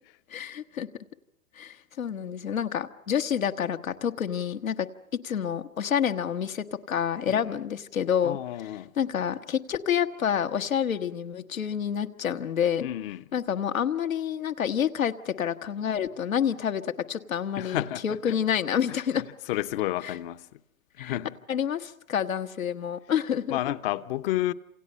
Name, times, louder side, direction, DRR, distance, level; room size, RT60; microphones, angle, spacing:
voice 1, 0.3-0.9 1.6-4.9 5.2-8.4 9.0-12.9 13.3-19.2 20.0-20.2 21.0-21.2 21.5-23.7, left 8 dB, 80° left, 1.5 m, -28 dB
voice 2, 8.2-8.9 12.8-13.2 17.6-18.4 18.9-20.6 21.0-21.4 23.5-24.5, left 14 dB, 45° left, 0.9 m, -31 dB
29.0 x 27.5 x 5.6 m
hypercardioid pair, 110°, 41 cm